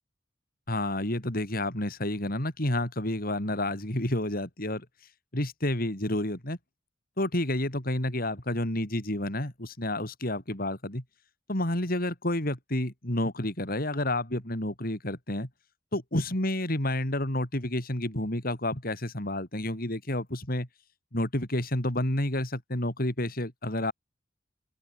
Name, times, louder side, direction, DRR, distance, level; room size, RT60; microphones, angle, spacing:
voice 1, 0.7-4.9 5.3-6.6 7.2-11.0 11.5-15.5 15.9-20.7 21.1-23.9, left 1 dB, 50° left, 4.6 m, -30 dB
open air
head